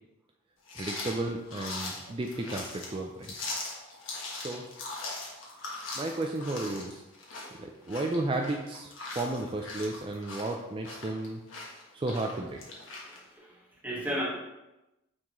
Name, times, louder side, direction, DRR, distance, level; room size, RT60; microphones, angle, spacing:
sound 1, 0.7-13.2, left 2 dB, 70° left, 1.4 m, -40 dB
voice 1, 0.8-3.3 4.3-4.6 6.0-7.0 7.6-11.4 11.9-12.6, right 2 dB, 25° right, 2 dB, 0.4 m, -33 dB
voice 2, 13.0-14.2, equal, 10° right, -5 dB, 1.4 m, -35 dB
8.6 x 3.7 x 3.0 m, 0.97 s
head